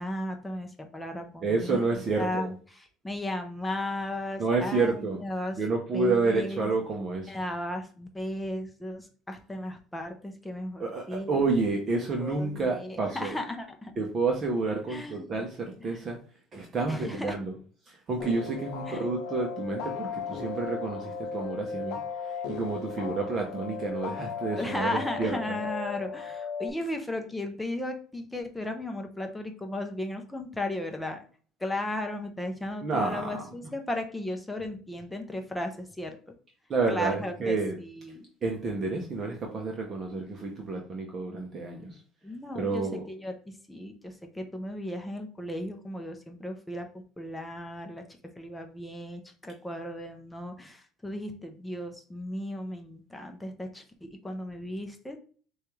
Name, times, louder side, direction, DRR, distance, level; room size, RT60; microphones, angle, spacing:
voice 1, 0.0-5.6 5.9-6.7 7.3-11.4 12.2-13.9 14.9-15.4 15.8-16.0 16.9-17.4 18.9-19.1 24.6-31.2 31.6-36.2 36.9-38.2 42.2-46.9 47.2-55.2, left 1 dB, 5° left, 4 dB, 0.6 m, -35 dB
voice 2, 1.4-2.5 4.4-5.2 5.6-7.3 10.8-13.4 14.0-16.2 16.5-17.5 17.9-25.6 32.8-33.4 36.7-37.7 38.4-42.0 42.5-43.0, right 3 dB, 30° right, 1 dB, 0.7 m, -29 dB
sound 1, 18.2-26.7, left 5 dB, 70° left, 0.7 m, -36 dB
6.4 x 2.4 x 3.1 m, 0.43 s
cardioid pair, 150°, 0 cm